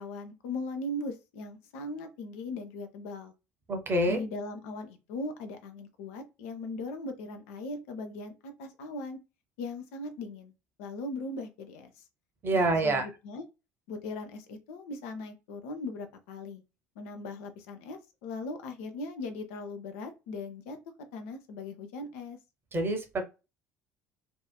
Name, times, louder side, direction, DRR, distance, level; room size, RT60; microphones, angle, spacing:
voice 1, 0.0-3.3 4.1-9.2 9.6-10.5 10.8-11.9 12.5-13.4 13.9-16.6 17.0-20.8 21.1-22.4, left 2 dB, 60° left, 0.4 m, -39 dB
voice 2, 3.7-4.2 12.4-13.1 22.7-23.2, right 2 dB, 25° right, 0.7 m, -26 dB
2.7 x 2.3 x 2.2 m
figure-of-eight pair, 60°, 8 cm